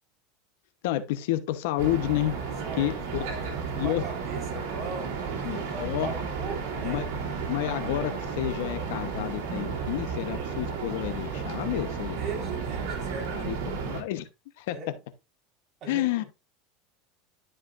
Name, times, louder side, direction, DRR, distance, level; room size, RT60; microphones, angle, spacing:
voice 1, 0.8-2.3 2.7-3.3 3.8-4.0 5.4-6.1 6.8-7.0 7.5-12.2 13.3-14.3 14.6-14.8 15.9-16.2, left 14 dB, 75° left, 0.9 m, -30 dB
sound 1, 1.8-14.0, right 5 dB, 70° right, 2.5 m, -33 dB
voice 2, 2.6-7.0 12.2-13.9 14.7-14.9 15.8-16.3, right 4 dB, 35° right, 4.1 m, -40 dB
12.5 x 5.0 x 2.5 m
supercardioid pair, 135°, 0 cm